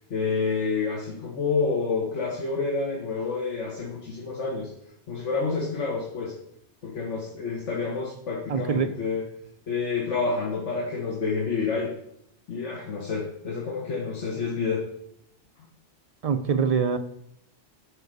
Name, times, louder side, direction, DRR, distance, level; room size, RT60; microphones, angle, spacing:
voice 1, 0.1-4.7 5.1-6.3 6.8-9.2 9.7-11.9 12.5-14.8, left 4 dB, 75° left, -2 dB, 1.6 m, -28 dB
voice 2, 8.5-8.9 16.2-17.0, right 6 dB, 75° right, 8 dB, 0.3 m, -24 dB
6.5 x 4.8 x 6.6 m, 0.73 s
omnidirectional pair, 1.2 m